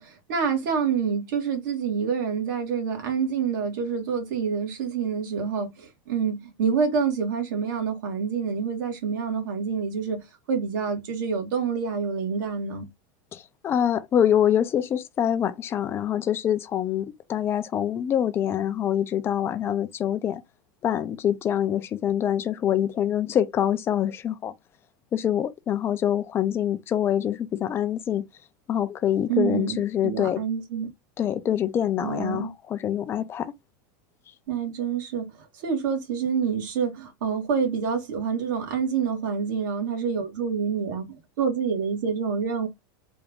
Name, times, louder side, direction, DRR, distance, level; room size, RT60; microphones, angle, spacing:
voice 1, 0.0-12.9 29.3-29.8 30.0-30.9 32.0-32.5 34.5-42.7, right 6 dB, 65° right, 1.6 m, -27 dB
voice 2, 13.3-20.4 20.8-24.5 25.1-28.2 28.7-30.4 31.2-33.5, left 10 dB, 20° left, 0.4 m, -25 dB
3.5 x 2.4 x 3.5 m
supercardioid pair, 155°, 11 cm